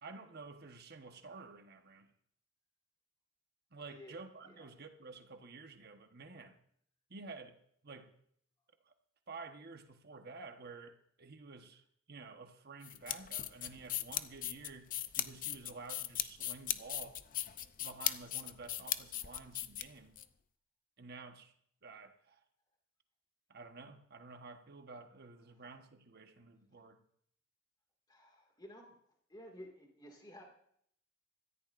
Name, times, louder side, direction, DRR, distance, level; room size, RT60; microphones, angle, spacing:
voice 1, 0.0-2.1 3.7-6.6 7.1-7.6 7.8-8.1 8.9-9.0 9.3-17.2 17.8-20.2 21.0-21.5 21.8-22.4 23.5-27.0, right 3 dB, 55° right, 1.2 m, -51 dB
sound 1, 12.8-20.2, left 12 dB, 45° left, 0.5 m, -38 dB
voice 2, 28.1-28.9 29.3-30.4, equal, 20° left, 2.1 m, -53 dB
25.0 x 14.0 x 2.6 m
head